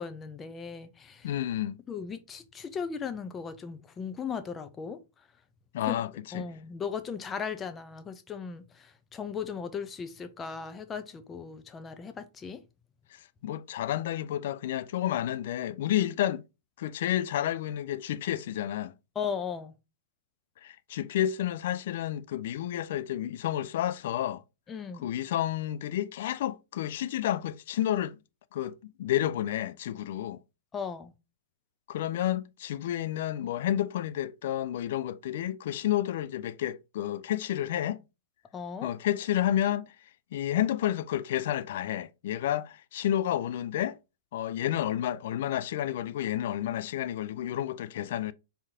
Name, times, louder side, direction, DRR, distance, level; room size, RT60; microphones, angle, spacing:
voice 1, 0.0-1.3 1.9-5.0 5.8-6.0 6.3-12.6 19.1-19.7 24.7-25.1 30.7-31.1 38.5-38.9, left 6 dB, 20° left, 0.6 m, -37 dB
voice 2, 1.2-1.8 5.7-6.5 13.4-16.4 16.8-18.9 20.6-24.4 25.0-28.2 28.5-30.4 31.9-38.0 38.8-39.9 40.3-44.0 44.3-48.3, left 12 dB, 55° left, 0.3 m, -30 dB
4.5 x 3.6 x 2.7 m
figure-of-eight pair, 105°, 0 cm